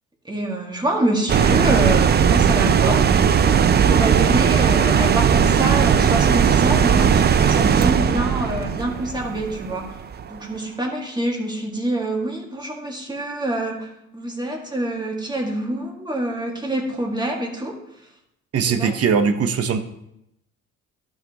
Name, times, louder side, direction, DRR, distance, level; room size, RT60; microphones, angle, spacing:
voice 1, 0.3-3.2 3.8-10.0 10.3-17.8 18.7-18.9, right 1 dB, 15° right, 0 dB, 1.9 m, -26 dB
sound 1, 1.3-10.3, right 7 dB, 35° right, 0.4 m, -17 dB
voice 2, 18.5-19.8, right 6 dB, 55° right, 8 dB, 0.9 m, -20 dB
12.5 x 6.0 x 2.9 m, 0.80 s
cardioid pair, 90°, 30 cm